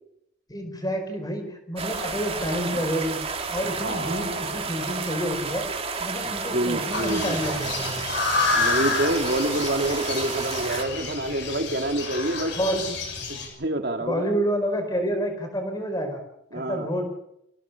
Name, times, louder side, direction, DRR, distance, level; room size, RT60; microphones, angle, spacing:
voice 1, 0.5-3.2 3.5-5.7 6.0-8.0 12.6-12.8 14.0-16.2 16.5-17.1, equal, 20° left, 5 dB, 4.9 m, -28 dB
sound 1, 1.8-10.8, right 4 dB, 30° right, 2.6 m, -31 dB
voice 2, 3.6-4.5 6.3-7.4 8.5-12.5 13.3-14.3 16.5-16.9, right 1 dB, 50° right, 5 dB, 2.2 m, -27 dB
sound 2, 6.9-13.5, left 3 dB, 55° left, 6.5 m, -29 dB
25.5 x 17.0 x 7.0 m, 0.79 s
head